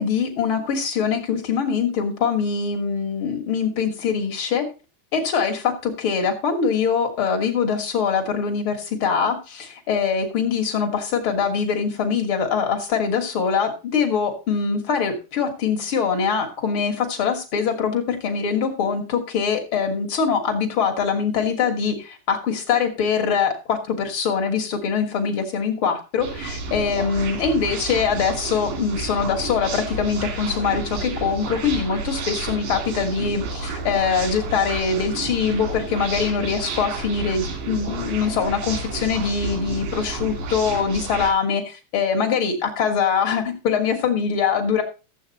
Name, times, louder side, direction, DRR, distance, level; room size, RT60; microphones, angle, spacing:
voice 1, 0.0-4.7 5.1-44.8, left 6 dB, 75° left, 2 dB, 1.2 m, -23 dB
sound 1, 26.2-41.3, right 3 dB, 80° right, 4.9 m, -31 dB
14.0 x 7.7 x 4.0 m, 0.31 s
omnidirectional pair, 5.0 m